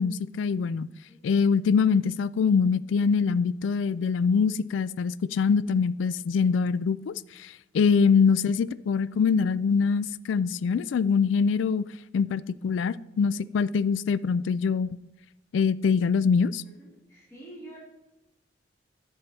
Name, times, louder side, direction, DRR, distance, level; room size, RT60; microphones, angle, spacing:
voice 1, 0.0-0.9 1.2-11.8 12.1-15.0 15.5-16.6, left 5 dB, 85° left, 0.3 m, -24 dB
voice 2, 16.6-17.8, right 1 dB, 15° left, 3.6 m, -47 dB
10.5 x 4.7 x 6.8 m
head